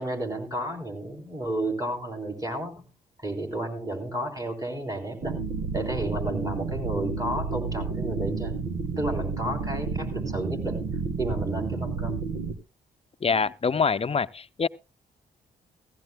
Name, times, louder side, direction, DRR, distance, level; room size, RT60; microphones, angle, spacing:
voice 1, 0.0-2.9 3.2-5.4 5.7-8.6 9.0-10.8 11.2-12.2, right 1 dB, 20° right, 3.8 m, -32 dB
sound 1, 5.2-12.6, right 4 dB, 75° right, 1.5 m, -31 dB
voice 2, 13.2-14.7, left 5 dB, 30° left, 0.6 m, -25 dB
16.5 x 15.0 x 2.2 m
supercardioid pair, 50°, 18 cm